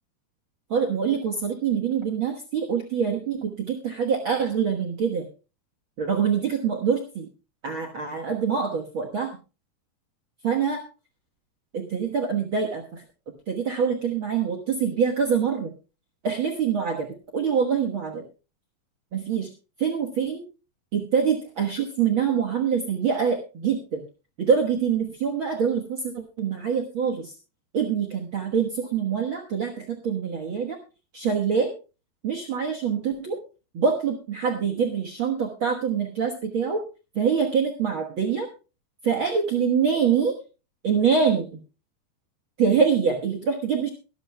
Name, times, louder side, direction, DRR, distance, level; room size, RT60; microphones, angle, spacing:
voice 1, 0.7-5.3 6.0-7.3 7.6-9.4 10.4-10.8 11.7-13.0 13.5-15.7 16.2-17.1 17.3-18.2 19.1-19.5 19.8-20.4 20.9-24.0 24.4-27.3 27.7-30.8 31.1-31.7 32.2-33.4 33.7-36.8 37.1-38.5 39.0-40.4 40.8-41.5 42.6-43.9, right 6 dB, 85° right, 2 dB, 1.1 m, -25 dB
23.0 x 12.0 x 2.2 m, 0.31 s
omnidirectional pair, 4.3 m